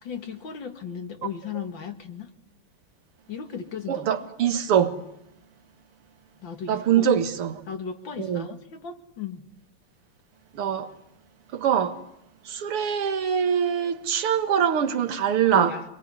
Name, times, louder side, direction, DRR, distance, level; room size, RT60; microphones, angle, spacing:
voice 1, 0.0-2.3 3.3-4.1 6.4-7.1 7.7-9.4 15.5-15.8, left 6 dB, 60° left, 2.5 m, -36 dB
voice 2, 3.9-5.0 6.7-7.6 8.2-8.5 10.5-10.9 11.5-12.0 12.4-15.8, right 8 dB, 90° right, 2.5 m, -23 dB
26.5 x 21.0 x 9.6 m
omnidirectional pair, 2.4 m